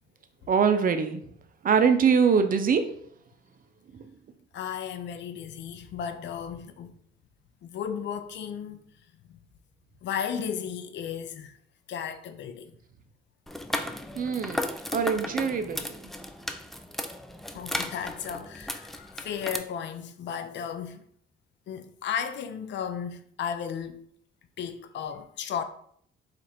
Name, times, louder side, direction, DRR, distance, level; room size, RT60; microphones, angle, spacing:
voice 1, 0.5-1.2 1.6-2.9 14.2-14.7 14.9-16.0, right 6 dB, 45° right, 0.6 m, -23 dB
voice 2, 4.5-6.9 7.6-8.8 9.3-9.4 10.0-11.6 11.9-12.8 17.5-21.0 21.7-24.1 24.6-25.6, left 8 dB, 65° left, 0.5 m, -34 dB
sound 1, 13.5-19.6, left 1 dB, ahead, 0.3 m, -35 dB
4.4 x 2.5 x 4.2 m
cardioid pair, 90°, 20 cm